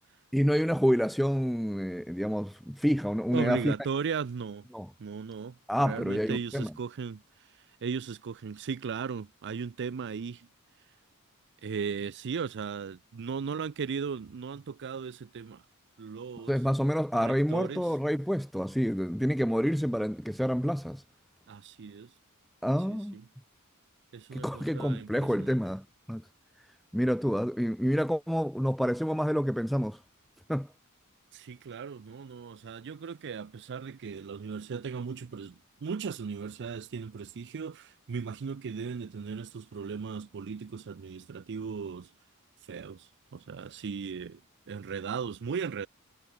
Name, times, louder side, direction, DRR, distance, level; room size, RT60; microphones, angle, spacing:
voice 1, 0.3-3.7 4.7-4.9 5.7-6.7 16.5-21.0 22.6-23.2 24.3-26.2 26.9-30.0 30.5-30.7, equal, ahead, 0.6 m, -28 dB
voice 2, 3.3-4.6 5.0-5.5 5.8-7.2 7.8-10.5 11.6-15.6 16.0-16.5 17.1-17.9 21.5-22.1 22.9-23.2 24.1-25.6 31.3-42.1 42.7-44.4 44.7-45.9, right 6 dB, 55° right, 0.4 m, -37 dB
head